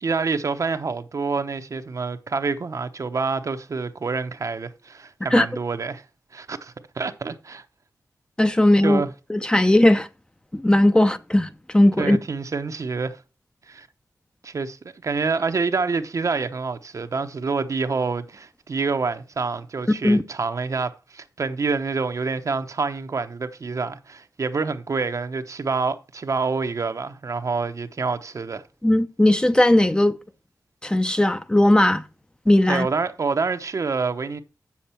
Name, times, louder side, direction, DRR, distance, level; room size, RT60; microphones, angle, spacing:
voice 1, 0.0-6.0 6.3-7.6 8.8-9.1 12.0-13.2 13.7-13.9 14.4-14.8 15.0-28.6 32.7-34.4, right 4 dB, 60° right, 0.8 m, -27 dB
voice 2, 8.4-9.0 9.3-10.1 10.5-12.2 20.0-20.2 28.8-30.2 30.8-32.0 32.5-32.9, left 1 dB, 15° left, 0.6 m, -18 dB
7.8 x 7.2 x 4.4 m
wide cardioid pair, 80°, 6 cm